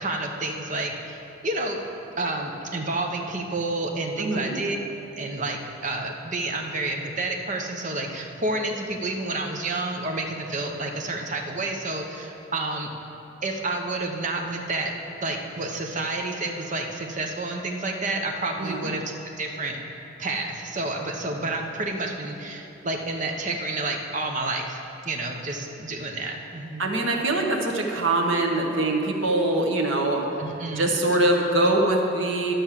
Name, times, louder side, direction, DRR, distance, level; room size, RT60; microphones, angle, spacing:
voice 1, 0.0-1.8 2.2-4.8 5.2-12.9 13.4-14.9 15.2-19.0 19.4-19.8 20.2-24.8 25.0-26.8 30.4-30.9, right 2 dB, 40° right, 2 dB, 0.9 m, -29 dB
voice 2, 4.2-4.6 18.6-18.9 26.8-30.3 30.7-32.5, right 2 dB, 70° right, 1 dB, 1.2 m, -23 dB
12.0 x 5.3 x 7.4 m, 2.9 s
head